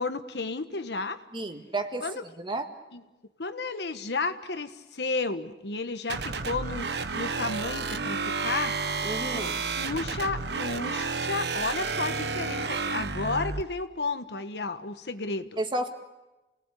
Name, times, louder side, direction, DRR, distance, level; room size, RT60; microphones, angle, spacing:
voice 1, 0.0-1.2 2.0-2.2 2.9-3.0 3.4-6.9 7.1-8.8 9.3-15.5, left 3 dB, 70° left, 10 dB, 1.3 m, -32 dB
voice 2, 1.3-2.0 2.4-2.7 9.0-9.6 15.6-15.9, right 2 dB, 30° right, 6 dB, 1.9 m, -31 dB
sound 1, 6.1-13.6, right 4 dB, 70° right, 1.3 m, -31 dB
29.5 x 19.0 x 8.4 m, 1.1 s
head